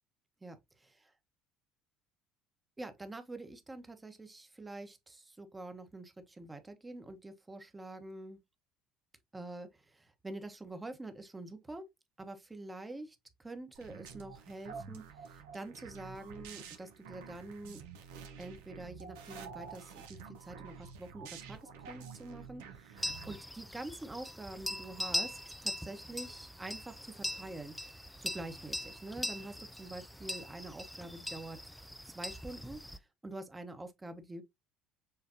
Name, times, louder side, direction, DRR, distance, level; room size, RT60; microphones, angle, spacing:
voice 1, 0.4-1.1 2.8-8.4 9.3-11.8 12.2-17.8 18.4-31.6 32.1-34.4, right 2 dB, 15° right, 1.1 m, -46 dB
sound 1, 13.7-23.4, right 6 dB, 75° right, 0.8 m, -49 dB
sound 2, 23.0-33.0, equal, 5° left, 0.4 m, -41 dB
6.7 x 2.5 x 2.7 m
hypercardioid pair, 65°, 0 cm